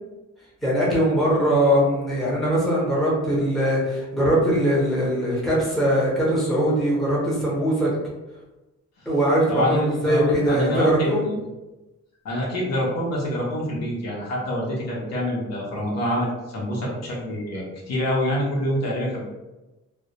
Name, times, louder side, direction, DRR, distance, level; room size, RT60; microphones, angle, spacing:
voice 1, 0.6-7.9 9.1-11.3, equal, ahead, -7 dB, 0.7 m, -21 dB
voice 2, 9.5-11.4 12.2-19.2, left 1 dB, 60° left, -3 dB, 0.7 m, -26 dB
2.2 x 2.1 x 2.7 m, 1.1 s
cardioid pair, 155°, 29 cm